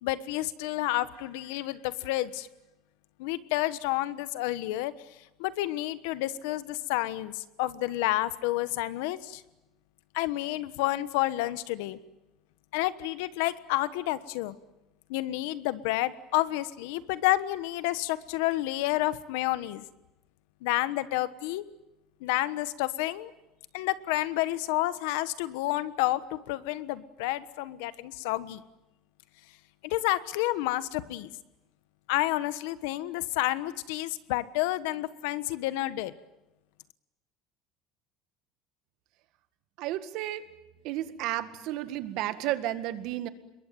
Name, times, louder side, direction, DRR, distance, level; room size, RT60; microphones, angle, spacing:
voice 1, 0.0-2.5 3.2-4.9 5.4-9.4 10.1-12.0 12.7-14.5 15.1-19.8 20.6-21.6 22.2-23.3 23.7-28.6 29.8-31.3 32.1-36.1, left 16 dB, 90° left, 14 dB, 1.3 m, -30 dB
voice 2, 39.8-40.4 40.8-43.3, right 14 dB, 60° right, 11 dB, 1.8 m, -32 dB
27.0 x 22.0 x 9.3 m, 0.97 s
cardioid pair, 160°, 0 cm